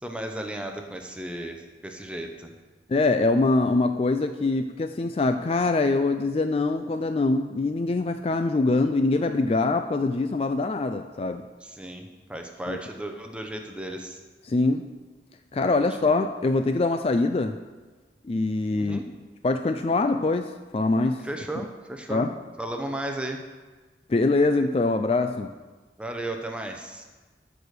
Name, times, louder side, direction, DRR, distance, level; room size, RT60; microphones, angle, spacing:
voice 1, 0.0-2.5 11.6-14.2 15.8-16.2 18.7-19.0 21.2-22.3 22.6-23.4 26.0-27.0, right 1 dB, 5° right, 4 dB, 0.8 m, -35 dB
voice 2, 2.9-11.4 12.7-12.8 14.5-14.8 15.5-17.6 18.2-19.0 19.4-21.2 22.1-22.3 24.1-25.5, left 3 dB, 35° left, 7 dB, 0.3 m, -24 dB
13.0 x 4.9 x 6.6 m, 1.3 s
head